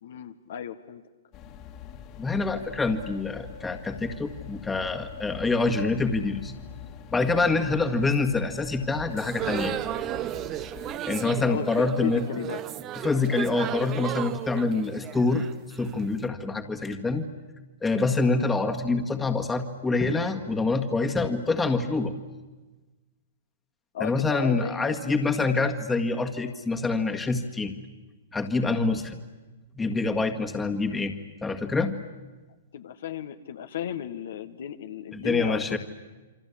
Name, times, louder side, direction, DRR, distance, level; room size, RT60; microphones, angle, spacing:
voice 1, 0.0-1.0 3.3-3.6 11.1-12.6 14.6-14.8 18.3-18.5 23.9-25.4 32.7-35.8, left 10 dB, 65° left, 9 dB, 1.5 m, -35 dB
sound 1, 1.3-11.0, left 8 dB, 35° left, 2.2 m, -44 dB
voice 2, 2.2-6.5 7.1-9.7 11.1-12.2 13.0-15.5 15.7-17.3 17.8-22.1 24.0-27.8 28.3-29.2 29.8-31.2 31.4-32.0 35.1-35.8, left 3 dB, 10° left, 5 dB, 1.9 m, -26 dB
sound 2, 9.1-16.1, right 12 dB, 30° right, 1.0 m, -34 dB
28.0 x 24.5 x 8.6 m, 1.2 s
hypercardioid pair, 135°, 0 cm